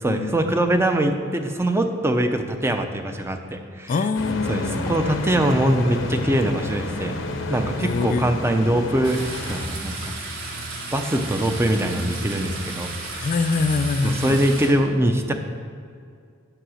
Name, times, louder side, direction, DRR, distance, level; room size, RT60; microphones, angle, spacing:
voice 1, 0.0-4.1 4.4-7.1 7.5-9.2 9.5-10.1 10.9-13.3 14.0-15.3, right 1 dB, 15° right, 6 dB, 0.6 m, -23 dB
voice 2, 3.9-4.9 7.8-8.2 13.2-14.4, left 4 dB, 45° left, 10 dB, 0.3 m, -24 dB
sound 1, 4.1-9.7, left 2 dB, 70° left, 0.8 m, -31 dB
sound 2, 5.0-14.4, equal, 55° right, 0.9 m, -40 dB
sound 3, 9.0-14.7, right 3 dB, 75° right, 1.6 m, -34 dB
8.9 x 5.9 x 6.4 m, 2.2 s
head